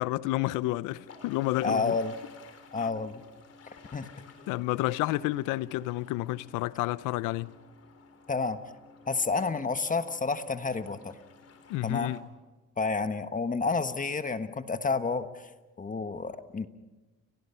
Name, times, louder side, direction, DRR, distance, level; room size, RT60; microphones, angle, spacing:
voice 1, 0.0-1.9 2.8-2.9 4.5-7.5 11.7-12.2, left 17 dB, 90° left, 0.7 m, -30 dB
sound 1, 0.9-12.2, left 4 dB, 50° left, 3.7 m, -53 dB
voice 2, 1.6-2.1 2.7-3.2 3.9-4.1 8.3-8.6 9.1-11.2 11.8-12.1 12.8-15.5 15.8-16.7, left 4 dB, 25° left, 1.4 m, -30 dB
30.0 x 19.0 x 5.7 m
cardioid pair, 90°, 30 cm